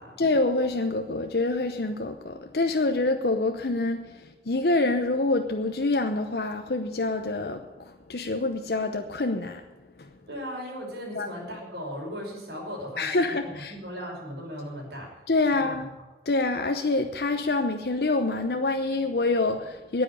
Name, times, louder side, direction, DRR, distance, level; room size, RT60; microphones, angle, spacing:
voice 1, 0.2-9.6 10.0-10.1 11.1-11.3 13.0-13.7 15.3-15.9 16.3-20.0, left 2 dB, 65° left, 6 dB, 0.8 m, -26 dB
voice 2, 10.3-15.2 15.5-15.9, equal, 75° right, -2 dB, 5.7 m, -37 dB
10.0 x 9.3 x 9.9 m, 1.1 s
head